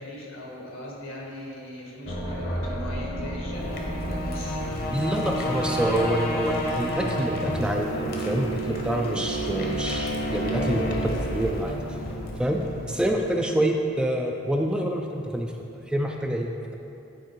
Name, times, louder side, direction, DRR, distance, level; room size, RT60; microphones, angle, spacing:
voice 1, 0.0-4.6, left 1 dB, 80° left, -3 dB, 1.7 m, -39 dB
sound 1, 2.1-13.3, equal, 50° left, 1.0 m, -29 dB
voice 2, 4.9-11.8 12.4-12.6 12.9-15.5 15.9-16.7, right 1 dB, 5° right, 1 dB, 0.4 m, -27 dB
8.8 x 4.5 x 4.6 m, 2.7 s
head